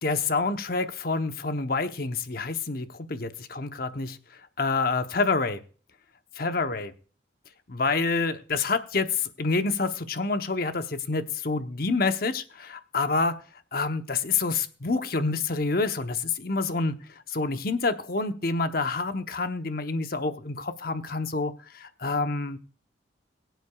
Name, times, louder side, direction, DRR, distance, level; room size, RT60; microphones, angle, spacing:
voice 1, 0.0-4.2 4.6-5.6 6.4-6.9 7.7-13.4 13.7-17.0 17.3-22.6, left 3 dB, 50° left, 9 dB, 0.9 m, -27 dB
22.0 x 8.0 x 2.3 m, 0.40 s
head